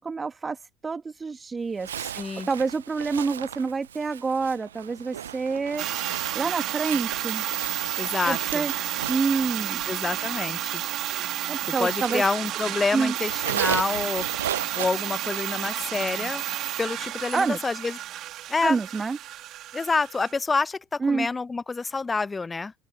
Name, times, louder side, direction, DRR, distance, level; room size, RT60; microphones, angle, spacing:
voice 1, 0.0-7.5 8.3-8.7 9.1-9.8 11.5-12.2 12.9-13.1 17.3-17.7 18.6-19.2 21.0-21.3, right 4 dB, 25° right, 2.1 m, -28 dB
Zipper (clothing), 1.8-12.7 13.0-15.9, right 10 dB, 80° right, 0.5 m, -36 dB
voice 2, 2.0-2.5 8.0-8.6 9.9-10.8 11.8-14.3 14.5-16.4 16.8-18.0 18.5-18.8 19.7-22.7, left 4 dB, 20° left, 0.6 m, -28 dB
sound 1, 5.8-20.3, right 13 dB, 50° right, 1.9 m, -31 dB
open air
hypercardioid pair, 70°, 0 cm